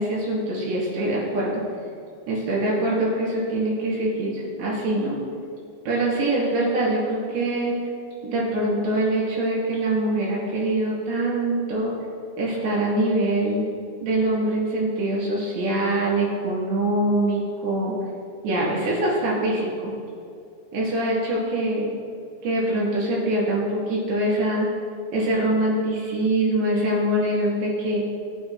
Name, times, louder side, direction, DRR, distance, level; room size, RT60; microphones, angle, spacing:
voice 1, 0.0-1.6 2.3-5.2 5.9-7.8 8.2-11.9 12.4-13.7 14.0-17.9 18.4-19.9 20.7-21.9 22.4-24.7 25.1-28.0, right 1 dB, 65° right, -5 dB, 5.8 m, -24 dB
29.0 x 9.7 x 2.2 m, 2.5 s
omnidirectional pair, 5.5 m